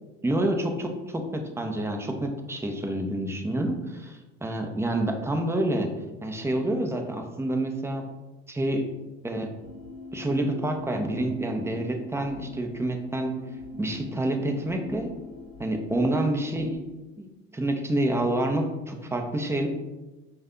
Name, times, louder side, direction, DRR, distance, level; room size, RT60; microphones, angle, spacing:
voice 1, 0.2-5.9 6.2-8.0 8.5-8.8 9.2-9.5 10.1-13.3 13.8-15.1 15.6-16.8 17.2-17.3 17.5-19.7, right 1 dB, 10° right, 3 dB, 0.6 m, -28 dB
sound 1, 9.6-16.8, left 1 dB, 55° left, 0.8 m, -42 dB
5.2 x 2.3 x 3.7 m, 1.1 s
supercardioid pair, 80°, 32 cm